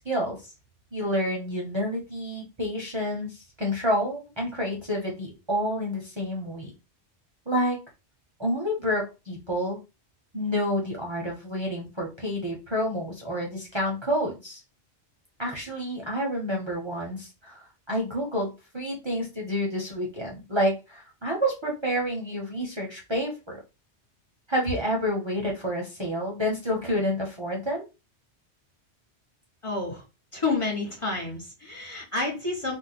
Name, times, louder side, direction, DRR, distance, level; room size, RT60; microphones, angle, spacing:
voice 1, 0.0-0.4 0.9-6.7 7.5-7.8 8.4-9.8 10.3-14.6 15.4-23.6 24.5-27.8, equal, 30° right, -2 dB, 0.7 m, -29 dB
voice 2, 29.6-30.0 30.3-32.8, left 3 dB, 30° left, -2 dB, 0.8 m, -29 dB
2.6 x 2.1 x 4.0 m, 0.27 s
omnidirectional pair, 1.1 m